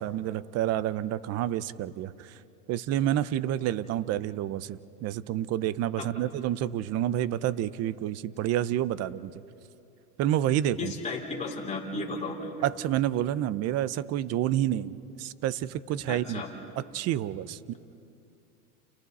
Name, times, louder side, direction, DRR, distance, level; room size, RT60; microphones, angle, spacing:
voice 1, 0.0-2.4 2.7-9.3 10.2-10.9 12.6-16.4 16.9-17.7, right 12 dB, 35° right, 17 dB, 0.6 m, -29 dB
voice 2, 10.8-12.5 16.1-16.5, left 3 dB, 15° left, -2 dB, 4.7 m, -34 dB
30.0 x 30.0 x 4.2 m, 2.7 s
supercardioid pair, 130°, 45 cm